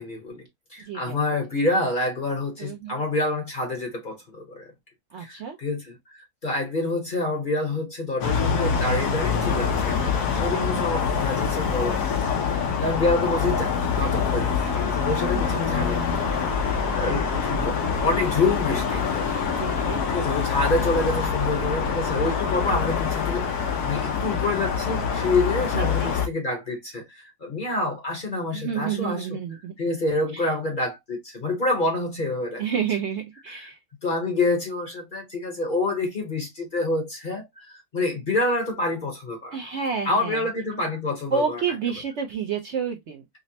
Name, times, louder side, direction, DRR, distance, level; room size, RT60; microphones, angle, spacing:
voice 1, 0.0-4.7 5.2-12.0 12.3-19.3 19.7-29.4 29.8-32.6 33.5-33.7 34.0-39.6 40.1-41.6, left 2 dB, 40° left, 0.8 m, -27 dB
voice 2, 0.8-1.3 2.6-3.0 5.1-5.6 10.3-10.8 15.3-16.4 16.9-17.4 19.6-20.0 25.7-26.1 28.5-29.7 30.3-30.5 32.6-33.8 39.5-40.5 41.3-43.2, right 6 dB, 60° right, 0.8 m, -30 dB
sound 1, 8.2-26.3, left 6 dB, 80° left, 1.3 m, -25 dB
5.1 x 2.0 x 2.6 m
omnidirectional pair, 1.7 m